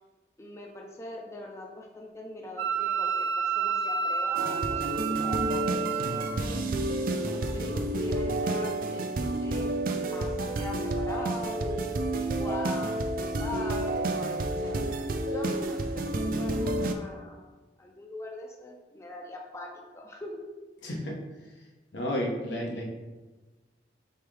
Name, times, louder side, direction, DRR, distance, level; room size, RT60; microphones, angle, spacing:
voice 1, 0.4-6.6 7.3-9.7 10.1-11.6 12.4-14.8 15.3-17.5 17.8-20.4, left 1 dB, 15° left, 0 dB, 0.4 m, -41 dB
Wind instrument woodwind instrument, 2.6-6.3, right 7 dB, 85° right, 0.7 m, -29 dB
sound 1, 4.4-16.9, right 1 dB, 50° right, 0.4 m, -30 dB
Keyboard (musical), 10.4-13.0, left 2 dB, 70° left, 1.3 m, -49 dB
voice 2, 20.8-21.1 21.9-22.8, equal, 90° left, -2 dB, 1.0 m, -31 dB
4.6 x 3.5 x 3.3 m, 1.2 s
head